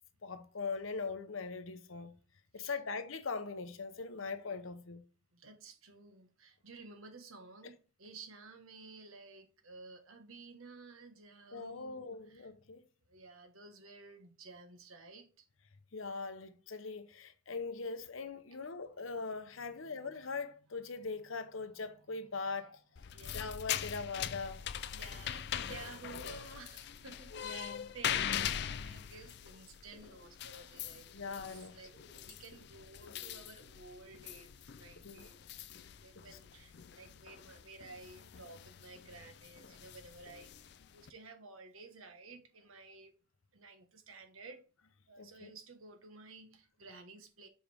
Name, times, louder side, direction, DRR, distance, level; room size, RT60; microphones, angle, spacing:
voice 1, 0.2-2.1 2.5-5.0 11.5-12.8 15.9-22.8 23.3-24.8 27.3-27.9 31.1-31.8 35.0-35.3 35.8-35.9 45.2-45.5, left 4 dB, 75° left, 0.8 m, -41 dB
voice 2, 5.3-12.5 13.1-15.5 19.5-23.6 24.9-43.1 43.5-44.6 45.1-47.5, right 3 dB, 90° right, 1.4 m, -54 dB
sound 1, 23.0-41.1, left 9 dB, 55° left, 0.4 m, -42 dB
sound 2, 29.8-30.3 31.0-31.5 31.8-32.3 33.0-33.4 33.9-34.5, left 1 dB, 30° right, 1.9 m, -62 dB
7.0 x 5.0 x 3.5 m
head